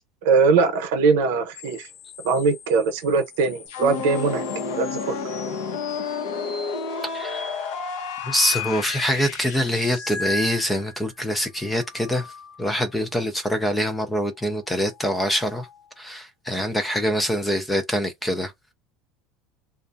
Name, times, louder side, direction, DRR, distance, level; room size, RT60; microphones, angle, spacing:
voice 1, 0.2-1.9 2.2-4.4 4.8-5.0, right 4 dB, 75° right, 0.7 m, -21 dB
sound 1, 1.5-11.1 11.6-12.9 14.7-15.9, left 4 dB, 60° left, 1.2 m, -39 dB
sound 2, 3.7-10.4, left 5 dB, 80° left, 0.8 m, -31 dB
voice 2, 7.1-7.6 8.2-12.3 12.6-15.7 16.0-18.5, equal, 5° left, 0.3 m, -24 dB
2.4 x 2.2 x 2.5 m
cardioid pair, 175°, 0 cm